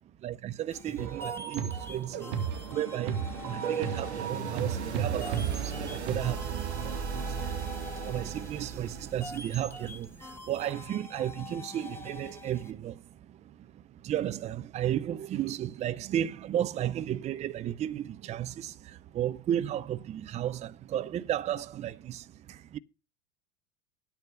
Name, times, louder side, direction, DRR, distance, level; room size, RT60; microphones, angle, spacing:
voice 1, 0.2-22.8, right 11 dB, 20° right, 0.5 m, -34 dB
sound 1, 0.7-12.7, left 3 dB, 5° left, 1.2 m, -46 dB
sound 2, 1.0-6.2, right 8 dB, 50° right, 1.5 m, -34 dB
sound 3, 1.4-10.3, right 6 dB, 70° right, 1.6 m, -38 dB
9.6 x 8.8 x 5.5 m
figure-of-eight pair, 80°, 34 cm